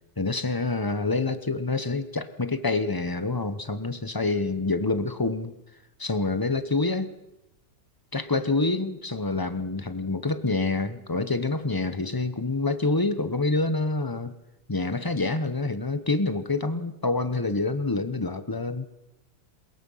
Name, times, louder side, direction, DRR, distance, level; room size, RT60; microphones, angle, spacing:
voice 1, 0.2-5.5 6.0-7.1 8.1-14.3 14.7-18.9, left 3 dB, 20° left, 11 dB, 0.6 m, -27 dB
22.5 x 21.0 x 5.6 m, 0.92 s
omnidirectional pair, 2.0 m